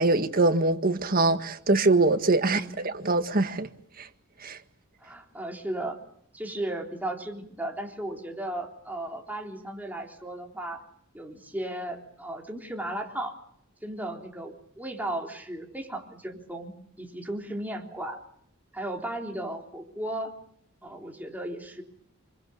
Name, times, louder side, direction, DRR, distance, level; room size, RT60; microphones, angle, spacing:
voice 1, 0.0-3.7 4.0-4.1 4.4-4.6, right 2 dB, 45° right, 1.8 m, -23 dB
voice 2, 2.4-2.8 5.0-6.0 6.3-10.8 11.1-13.3 13.8-18.2 18.7-20.3 20.8-21.8, right 1 dB, 10° right, 3.6 m, -35 dB
27.5 x 24.0 x 7.1 m
head